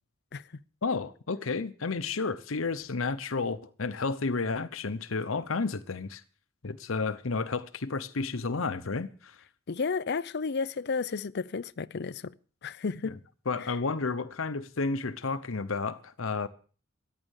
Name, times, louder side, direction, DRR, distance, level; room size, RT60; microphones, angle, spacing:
voice 1, 0.8-6.2 6.6-9.4 13.5-16.5, left 4 dB, 85° left, 0.9 m, -31 dB
voice 2, 9.7-12.3 12.6-13.2 13.6-13.7, left 5 dB, 55° left, 0.6 m, -32 dB
14.5 x 10.0 x 6.5 m
head